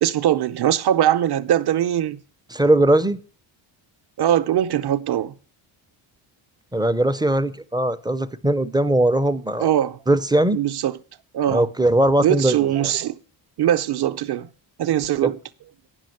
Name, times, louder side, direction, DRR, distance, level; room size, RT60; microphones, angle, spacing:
voice 1, 0.0-2.2 4.2-5.3 9.6-10.0 10.5-11.0 11.3-11.7 12.2-13.2 13.6-14.5 14.8-15.4, right 11 dB, 50° right, 0.7 m, -21 dB
voice 2, 2.5-3.2 6.7-9.7 10.1-10.6 11.5-12.6 15.2-15.3, right 1 dB, 10° right, 0.4 m, -19 dB
9.1 x 6.2 x 7.7 m
cardioid pair, 115°, 50 cm